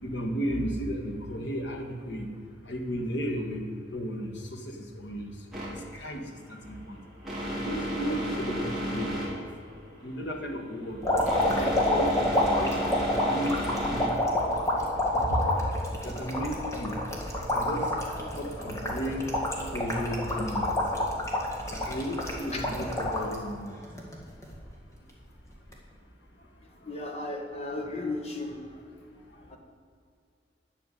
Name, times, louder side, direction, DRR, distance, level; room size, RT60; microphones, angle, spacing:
voice 1, 0.0-2.3 2.7-3.6 3.9-5.3 5.7-7.0 7.6-9.5 10.0-11.0 11.4-12.8 13.2-14.1 15.3-15.4 16.0-17.0 17.4-17.9 18.3-19.3 19.7-20.8 21.7-23.8, equal, 75° left, 3 dB, 1.8 m, -34 dB
sound 1, 5.5-14.8, right 1 dB, ahead, 3.1 m, -34 dB
sound 2, 11.0-23.4 23.8-24.6 25.6-25.7, left 1 dB, 15° left, 1.9 m, -28 dB
voice 2, 26.8-28.6 29.5-29.6, left 2 dB, 35° left, 2 dB, 1.7 m, -34 dB
10.5 x 7.0 x 9.3 m, 2.3 s
head